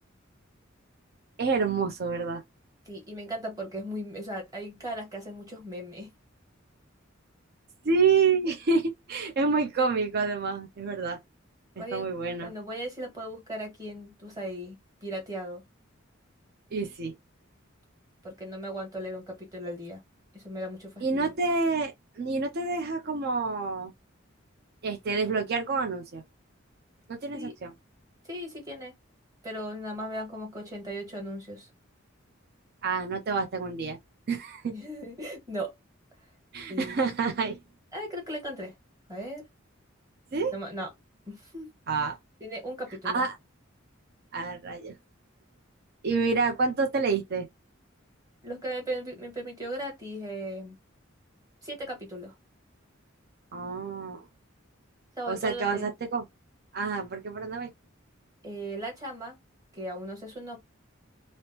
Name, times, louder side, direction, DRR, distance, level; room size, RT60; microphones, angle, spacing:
voice 1, 1.4-2.4 7.8-11.2 11.8-12.5 16.7-17.1 21.0-23.9 24.8-26.2 27.1-27.7 32.8-34.0 34.3-34.7 36.5-37.6 40.3-40.5 41.9-42.2 43.1-43.4 44.3-44.9 46.0-47.5 53.5-54.2 55.3-56.2 56.7-57.7, right 4 dB, 50° right, 0.5 m, -28 dB
voice 2, 2.8-6.1 11.7-12.1 12.4-15.6 18.2-20.0 20.3-21.3 27.3-27.5 28.2-28.9 29.4-31.7 34.7-35.7 36.7-37.0 37.9-38.7 39.1-39.4 40.5-40.9 41.2-41.7 42.4-43.2 48.4-50.7 51.6-52.3 55.2-55.9 58.4-59.3 59.7-60.6, right 1 dB, 20° right, 1.5 m, -37 dB
3.0 x 2.0 x 2.8 m
head